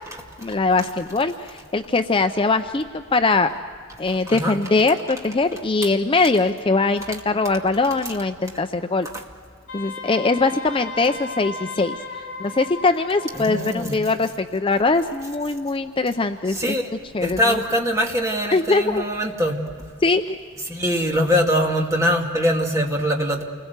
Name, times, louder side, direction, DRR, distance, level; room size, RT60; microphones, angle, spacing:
voice 1, 0.4-3.5 4.0-9.1 9.7-12.0 12.4-16.8 17.1-17.4 18.5-19.0 20.0-20.4, left 3 dB, 25° left, 7 dB, 0.5 m, -21 dB
voice 2, 4.2-4.6 9.1-9.2 13.3-14.0 16.5-16.9 17.2-19.6 20.7-23.4, equal, 15° right, 0 dB, 2.3 m, -22 dB
Wind instrument woodwind instrument, 9.7-13.9, left 4 dB, 55° left, 5.3 m, -36 dB
28.5 x 21.0 x 8.1 m, 2.3 s
head